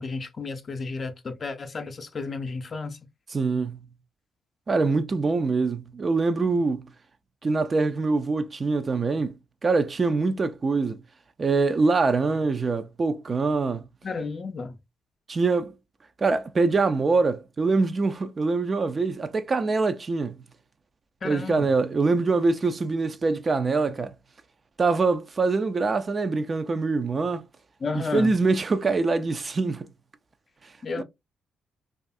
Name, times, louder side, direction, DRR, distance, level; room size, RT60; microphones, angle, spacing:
voice 1, 0.0-3.0 14.0-14.8 21.2-21.7 27.8-28.3 30.8-31.0, left 4 dB, 45° left, 0.5 m, -32 dB
voice 2, 3.3-3.9 4.7-6.9 7.4-9.4 9.6-11.0 11.4-13.9 15.3-15.7 16.2-20.4 21.2-24.1 24.8-27.4 27.9-29.9 31.0-31.1, right 3 dB, 40° right, 0.4 m, -24 dB
2.5 x 2.4 x 2.4 m
hypercardioid pair, 50°, 0 cm